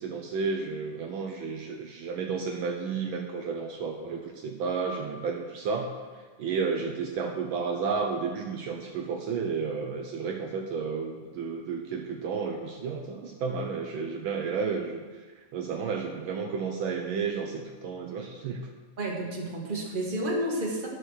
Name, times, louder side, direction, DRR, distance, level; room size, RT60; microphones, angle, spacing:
voice 1, 0.0-5.9 6.4-15.0 15.4-18.7, right 5 dB, 85° right, 2 dB, 1.1 m, -32 dB
voice 2, 19.0-20.9, right 1 dB, 20° right, -3 dB, 1.5 m, -30 dB
11.0 x 6.3 x 6.5 m, 1.4 s
omnidirectional pair, 3.3 m